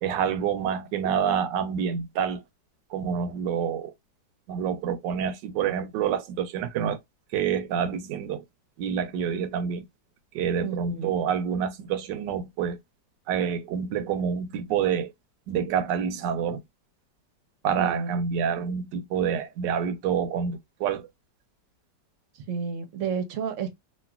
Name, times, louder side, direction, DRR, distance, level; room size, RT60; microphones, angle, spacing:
voice 1, 0.0-2.4 2.9-3.9 4.5-7.0 7.3-8.4 8.8-9.8 10.3-12.8 13.3-15.1 15.5-16.6 17.6-21.1, right 7 dB, 80° right, 1.2 m, -27 dB
voice 2, 10.6-11.1 17.8-18.1 22.5-23.7, right 6 dB, 55° right, 0.9 m, -30 dB
3.1 x 2.6 x 2.3 m
omnidirectional pair, 1.9 m